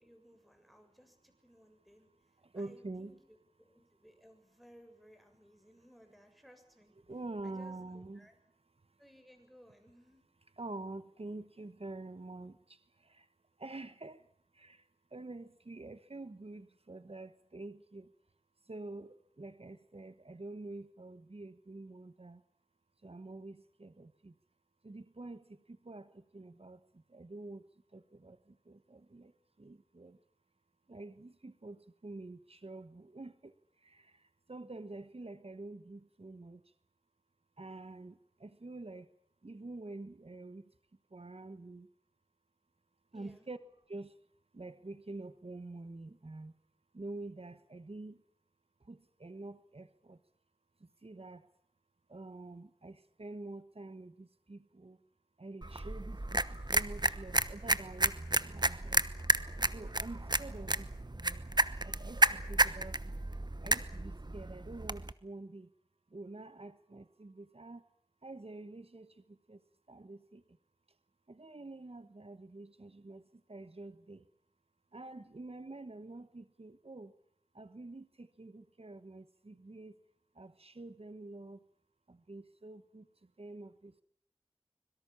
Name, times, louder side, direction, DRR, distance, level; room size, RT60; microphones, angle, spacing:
voice 1, 0.0-2.1 2.5-6.9 7.4-8.4 9.0-10.2 43.1-43.5, equal, ahead, 6 dB, 7.3 m, -60 dB
voice 2, 2.4-3.2 7.1-8.3 10.6-13.3 13.6-14.3 14.5-18.1 18.6-22.4 23.0-24.3 24.8-27.6 27.9-29.3 29.6-30.2 30.9-36.6 37.6-39.1 39.4-40.7 41.1-41.9 43.1-43.6 43.9-44.1 44.5-46.5 46.9-48.2 48.8-50.2 50.8-51.5 52.1-55.0 55.4-59.0 59.7-61.4 61.8-63.2 63.6-65.7 66.1-67.8 68.2-69.6 69.9-70.6 71.3-74.3 74.9-77.1 77.5-79.9 80.3-81.6 82.1-84.0, right 2 dB, 90° right, 13 dB, 1.2 m, -47 dB
sound 1, 55.6-65.1, right 2 dB, 45° right, 1.0 m, -32 dB
25.0 x 22.5 x 7.2 m, 0.68 s
wide cardioid pair, 40°, 10 cm